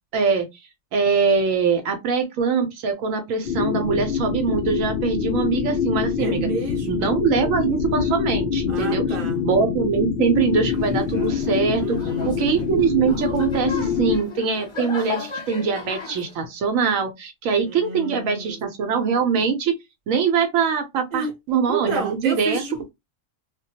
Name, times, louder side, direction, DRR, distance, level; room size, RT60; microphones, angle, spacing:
voice 1, 0.1-0.5 0.9-6.5 6.9-9.0 9.4-11.8 12.3-19.8 20.1-22.6, right 5 dB, 80° right, 1.0 m, -22 dB
sound 1, 3.4-14.2, left 7 dB, 65° left, 0.6 m, -25 dB
voice 2, 6.2-7.1 8.7-9.4 11.7-12.4 17.6-18.6 21.1-21.3 21.7-22.8, right 4 dB, 40° right, 0.8 m, -30 dB
sound 2, 10.7-16.3, left 4 dB, 25° left, 0.7 m, -36 dB
2.3 x 2.2 x 2.7 m
omnidirectional pair, 1.4 m